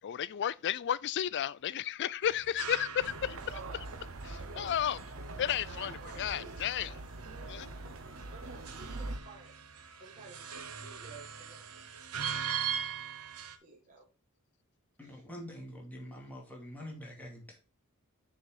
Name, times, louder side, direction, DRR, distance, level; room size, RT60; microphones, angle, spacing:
voice 1, 0.0-3.9 4.2-5.1 5.4-6.9 7.5-7.7, left 10 dB, 55° left, 0.4 m, -33 dB
sound 1, 2.2-13.6, right 7 dB, 90° right, 1.0 m, -42 dB
sound 2, 3.0-9.2, right 2 dB, 70° right, 1.1 m, -43 dB
voice 2, 6.0-7.1 8.3-9.5 10.0-11.8 13.6-14.1 15.0-15.2, right 3 dB, 35° right, 1.8 m, -54 dB
voice 3, 15.0-17.6, equal, 5° left, 2.4 m, -45 dB
6.5 x 5.4 x 4.7 m
head